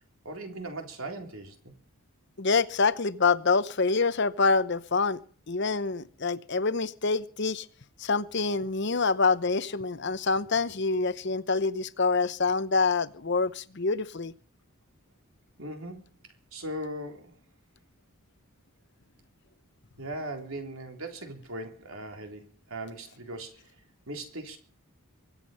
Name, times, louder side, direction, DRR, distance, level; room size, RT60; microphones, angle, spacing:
voice 1, 0.3-1.7 15.6-16.1 16.5-17.4 20.0-23.7 24.1-24.6, right 1 dB, 70° right, 3.6 m, -39 dB
voice 2, 2.4-5.2 5.5-7.7 8.0-14.3, left 4 dB, 50° left, 0.8 m, -26 dB
24.0 x 8.4 x 5.6 m
head